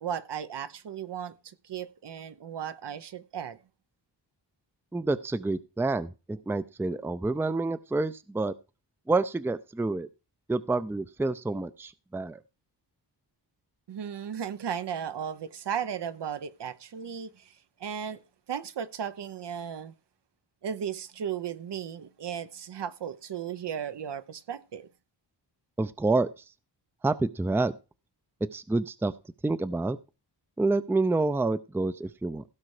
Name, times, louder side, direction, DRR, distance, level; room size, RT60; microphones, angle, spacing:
voice 1, 0.0-3.6 13.9-17.5 17.8-18.2 18.5-19.9 20.6-24.9, right 8 dB, 70° right, 0.9 m, -35 dB
voice 2, 4.9-8.5 9.1-10.1 10.5-12.4 25.8-26.3 27.0-27.7 28.5-29.1 29.4-30.0 30.6-32.4, right 3 dB, 5° right, 0.4 m, -28 dB
16.5 x 5.5 x 4.9 m
wide cardioid pair, 115°, 43 cm